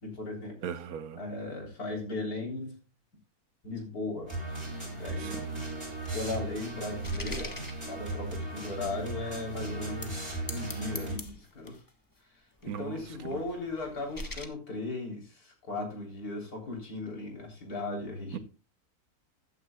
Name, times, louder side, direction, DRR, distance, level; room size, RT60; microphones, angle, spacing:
voice 1, 0.0-0.6 1.2-2.7 3.6-4.3 4.9-5.4 6.1-7.6 7.9-10.2 10.4-11.8 12.6-18.4, left 2 dB, 80° left, 3.9 m, -37 dB
voice 2, 0.6-1.2 5.2-5.5 12.7-13.4 18.3-18.4, right 9 dB, 75° right, 1.3 m, -39 dB
sound 1, 4.3-11.1, right 2 dB, 20° right, 6.7 m, -36 dB
sound 2, 5.2-8.5 9.1-9.2 9.9-10.2 10.5-11.9 12.6-14.4, left 2 dB, 15° left, 1.0 m, -44 dB
15.0 x 9.4 x 2.2 m
omnidirectional pair, 1.6 m